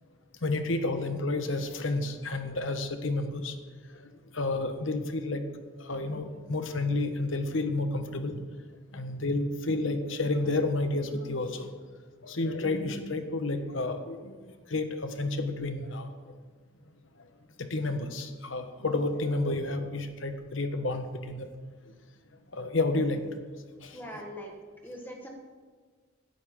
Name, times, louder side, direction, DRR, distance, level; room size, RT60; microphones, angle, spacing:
voice 1, 0.4-3.5 4.3-5.4 5.8-8.4 8.9-11.7 12.2-14.3 14.7-16.1 17.7-21.5 22.5-23.2 23.8-24.0, left 2 dB, 75° left, 7 dB, 1.3 m, -30 dB
voice 2, 23.9-24.5 24.8-25.3, equal, 10° left, 0 dB, 1.5 m, -41 dB
16.5 x 12.0 x 3.8 m, 1.5 s
head